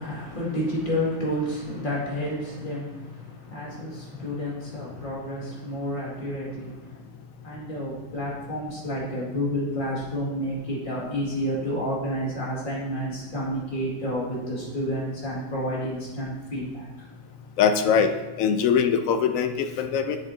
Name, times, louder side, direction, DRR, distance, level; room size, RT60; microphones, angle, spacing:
voice 1, 0.0-7.1 7.4-17.1, equal, 35° left, -6 dB, 2.2 m, -30 dB
voice 2, 17.6-18.1 18.4-20.2, left 7 dB, 70° left, 8 dB, 0.9 m, -22 dB
7.9 x 7.4 x 2.7 m, 1.1 s
omnidirectional pair, 1.6 m